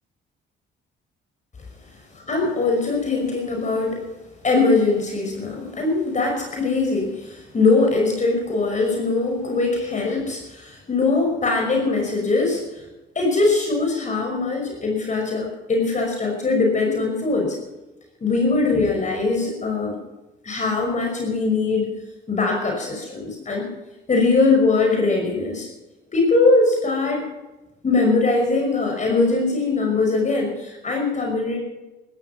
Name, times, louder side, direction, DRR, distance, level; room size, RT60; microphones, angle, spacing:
voice 1, 2.3-4.1 4.4-12.6 13.2-17.6 18.2-20.0 20.4-21.9 22.3-23.7 24.1-25.7 26.1-27.2 27.8-31.6, left 3 dB, 40° left, 1 dB, 5.7 m, -21 dB
16.5 x 14.0 x 5.9 m, 1.1 s
cardioid pair, 90°, 20 cm